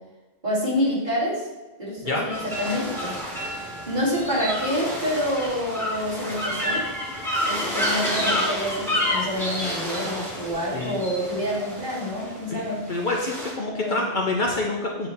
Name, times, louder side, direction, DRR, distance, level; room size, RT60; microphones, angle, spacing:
voice 1, 0.4-1.5 1.8-3.2 3.9-6.8 7.5-12.9 13.7-14.1, equal, 45° right, -8 dB, 2.6 m, -27 dB
sound 1, 2.3-13.5, equal, ahead, 1.7 m, -29 dB
voice 2, 12.9-15.1, left 2 dB, 50° left, 0 dB, 0.8 m, -26 dB
8.6 x 3.3 x 4.2 m, 1.1 s
omnidirectional pair, 1.1 m